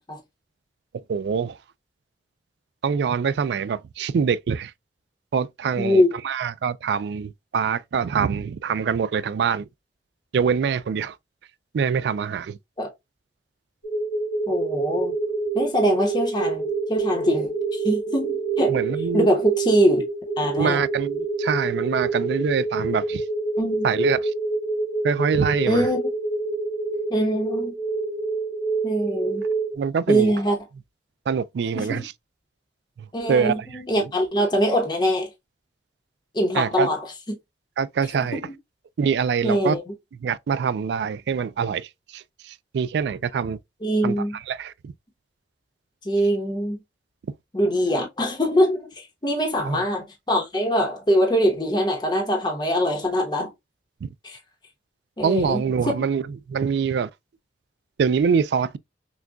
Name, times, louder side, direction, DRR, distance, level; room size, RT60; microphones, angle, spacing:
voice 1, 1.1-1.6 2.8-4.7 5.3-9.6 10.3-11.2 11.7-12.6 18.7-19.3 20.6-23.2 23.8-24.3 25.0-25.9 29.7-30.3 31.3-32.1 33.0-33.7 34.0-34.1 36.5-36.9 37.8-38.4 39.0-39.8 40.2-43.6 44.0-44.9 49.6-49.8 54.0-54.1 55.2-56.2 56.5-57.1 58.0-58.8, right 6 dB, 70° right, 0.3 m, -24 dB
voice 2, 5.8-6.1 12.8-12.9 14.5-15.2 15.5-20.0 20.4-20.8 23.6-23.9 25.7-26.0 27.1-27.7 28.8-29.5 30.1-30.6 31.7-32.0 33.1-35.3 36.3-37.1 38.2-38.4 39.4-39.8 43.8-44.3 46.0-46.8 47.5-53.5 54.2-54.4 55.2-56.0, equal, 25° left, 0.9 m, -23 dB
sound 1, 13.8-29.8, right 3 dB, 85° left, 2.4 m, -27 dB
6.1 x 2.3 x 2.3 m
head